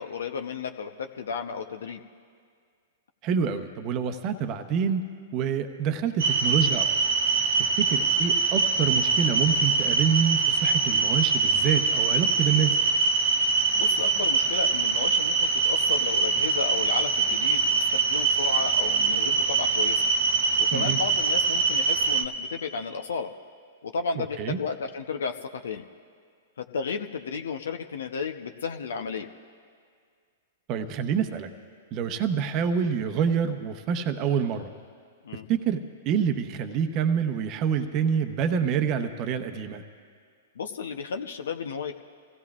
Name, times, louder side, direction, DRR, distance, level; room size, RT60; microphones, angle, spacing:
voice 1, 0.0-2.0 7.9-8.0 13.8-20.0 20.6-23.3 23.8-25.8 26.6-29.3 35.2-35.4 40.6-41.9, left 5 dB, 70° left, 6 dB, 0.7 m, -33 dB
voice 2, 3.2-5.1 5.3-6.9 7.6-12.8 20.7-21.0 24.2-24.6 30.7-31.5 31.9-34.7 35.5-39.8, right 7 dB, 40° right, 7 dB, 0.8 m, -27 dB
sound 1, 6.2-22.3, right 4 dB, 70° right, 0.9 m, -24 dB
26.5 x 16.0 x 2.4 m, 2.1 s
hypercardioid pair, 110°, 0 cm